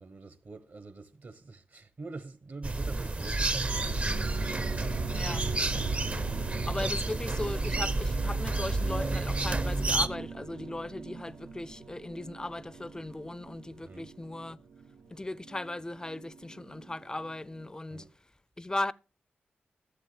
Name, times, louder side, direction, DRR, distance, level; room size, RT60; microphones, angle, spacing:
voice 1, 0.0-5.3 13.8-14.1 17.9-18.1, right 3 dB, 55° right, 1.0 m, -47 dB
sound 1, 2.6-10.1, right 2 dB, 35° right, 0.5 m, -30 dB
sound 2, 3.7-17.7, right 4 dB, 90° right, 0.7 m, -42 dB
voice 2, 5.1-5.4 6.7-14.6 15.1-18.1 18.6-18.9, left 2 dB, 20° left, 0.4 m, -37 dB
11.5 x 7.2 x 3.3 m
cardioid pair, 55°, 4 cm